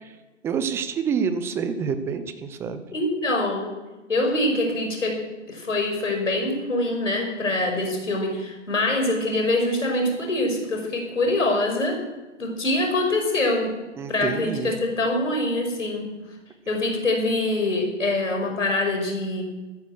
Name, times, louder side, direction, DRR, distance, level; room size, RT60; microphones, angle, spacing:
voice 1, 0.4-2.8 14.0-14.7, right 6 dB, 5° right, 11 dB, 0.5 m, -27 dB
voice 2, 2.9-3.8 4.1-12.0 12.4-13.8 14.1-16.2 16.7-19.4, left 2 dB, 80° left, 2 dB, 5.6 m, -24 dB
15.0 x 14.0 x 6.3 m, 1.2 s
figure-of-eight pair, 130°, 37 cm